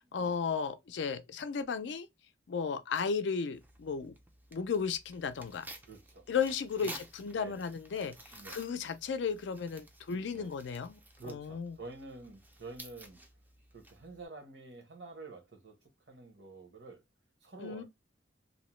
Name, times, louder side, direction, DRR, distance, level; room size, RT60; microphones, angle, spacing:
voice 1, 0.0-2.1 2.5-4.1 4.5-5.7 6.3-8.1 8.5-11.0 11.3-11.7 17.6-17.8, left 6 dB, 75° left, 0.4 m, -34 dB
Tearing, 3.5-14.2, right 1 dB, 10° right, 0.3 m, -53 dB
voice 2, 5.8-6.3 6.8-7.0 7.3-7.6 8.3-8.6 10.3-10.5 11.2-13.2 13.7-15.8 16.1-17.0 17.4-17.8, right 3 dB, 70° right, 0.9 m, -48 dB
2.7 x 2.0 x 3.0 m
head